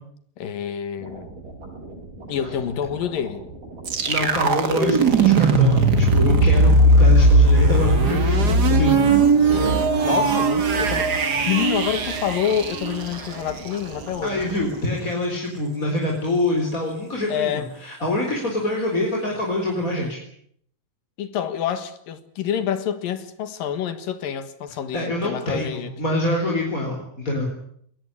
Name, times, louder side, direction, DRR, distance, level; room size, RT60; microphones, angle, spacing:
voice 1, 0.4-1.3 2.3-3.4 9.5-14.4 17.3-17.7 21.2-25.9, left 9 dB, 70° left, 3.2 m, -27 dB
sound 1, 1.0-14.8, right 2 dB, 60° right, 9.2 m, -40 dB
sound 2, 3.9-13.7, right 2 dB, 35° right, 1.7 m, -18 dB
voice 2, 4.1-9.0 14.2-20.2 24.9-27.5, left 1 dB, 20° left, 4.3 m, -25 dB
21.5 x 19.0 x 9.9 m
omnidirectional pair, 4.2 m